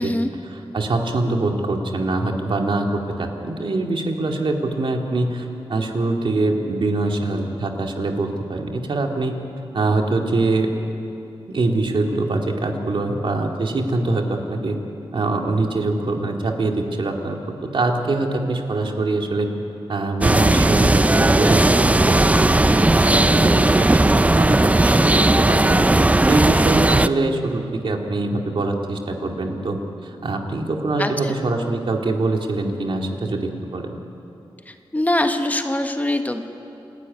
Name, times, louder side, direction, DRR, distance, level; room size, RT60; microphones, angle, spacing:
voice 1, 0.4-9.4 9.7-10.8 11.5-14.8 15.1-19.5 19.9-24.9 25.2-34.0, right 2 dB, 65° right, 2 dB, 2.2 m, -24 dB
sound 1, 20.2-27.1, right 2 dB, 15° right, 0.5 m, -16 dB
voice 2, 31.0-31.3 34.7-36.5, left 1 dB, 15° left, 6 dB, 1.3 m, -23 dB
27.5 x 12.5 x 9.7 m, 2.8 s
wide cardioid pair, 90°, 9 cm